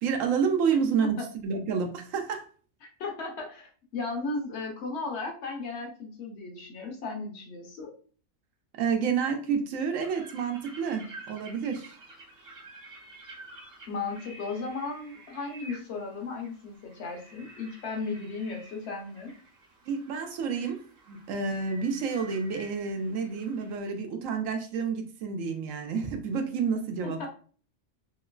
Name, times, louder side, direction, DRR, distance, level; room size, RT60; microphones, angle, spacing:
voice 1, 0.0-2.5 8.8-12.0 19.9-20.8 21.1-27.3, right 6 dB, 80° right, 5 dB, 1.0 m, -29 dB
voice 2, 3.0-7.9 13.9-19.3 27.0-27.3, left 3 dB, 60° left, 2 dB, 1.0 m, -35 dB
sound 1, 10.0-23.8, right 2 dB, 55° right, 1.0 m, -50 dB
3.0 x 2.9 x 2.3 m, 0.42 s
omnidirectional pair, 1.4 m